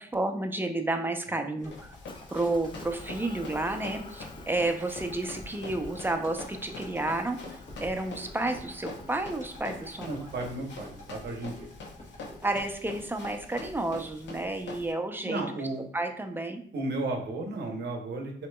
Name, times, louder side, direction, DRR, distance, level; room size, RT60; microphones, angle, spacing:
voice 1, 0.1-1.9 2.3-10.3 12.4-15.4 15.9-16.6, right 2 dB, 10° right, 5 dB, 0.6 m, -31 dB
Run, 1.6-14.9, left 3 dB, 80° left, 0.8 m, -45 dB
sound 1, 1.6-13.8 14.2-14.3, left 1 dB, 45° left, 1.4 m, -48 dB
Motor vehicle (road) / Engine, 2.0-10.5, left 2 dB, 25° left, 0.6 m, -50 dB
voice 2, 10.0-11.7 15.2-15.9 16.7-18.5, right 2 dB, 70° right, 3 dB, 0.9 m, -34 dB
6.5 x 2.9 x 2.3 m, 0.62 s
cardioid pair, 70°, 18 cm